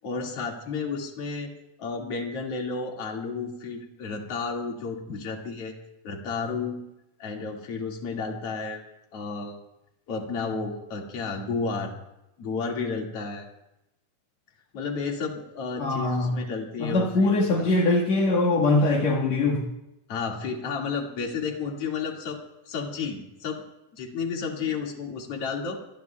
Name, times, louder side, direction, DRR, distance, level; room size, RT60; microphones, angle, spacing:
voice 1, 0.0-1.5 1.8-5.8 6.0-6.8 7.2-8.8 9.1-9.6 10.1-11.9 12.4-13.5 14.7-17.7 20.1-23.6 23.9-25.8, left 4 dB, 50° left, 0 dB, 1.8 m, -32 dB
voice 2, 15.8-16.4 16.8-19.7, left 2 dB, 75° left, -3 dB, 1.6 m, -22 dB
25.5 x 22.0 x 2.3 m, 0.90 s
omnidirectional pair, 6.0 m